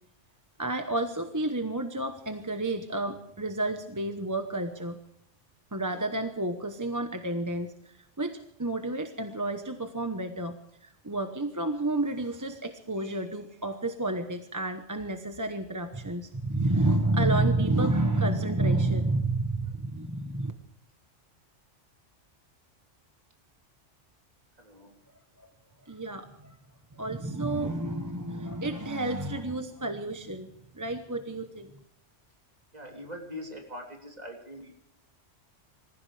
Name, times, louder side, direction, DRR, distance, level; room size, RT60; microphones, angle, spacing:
voice 1, 0.6-5.0 5.7-20.5 25.4-25.5 25.8-26.6 27.0-31.7, right 2 dB, 15° right, 6 dB, 0.9 m, -30 dB
voice 2, 24.6-24.9 32.7-34.7, left 1 dB, 35° right, 1 dB, 3.5 m, -42 dB
25.5 x 15.5 x 3.4 m, 0.77 s
omnidirectional pair, 1.3 m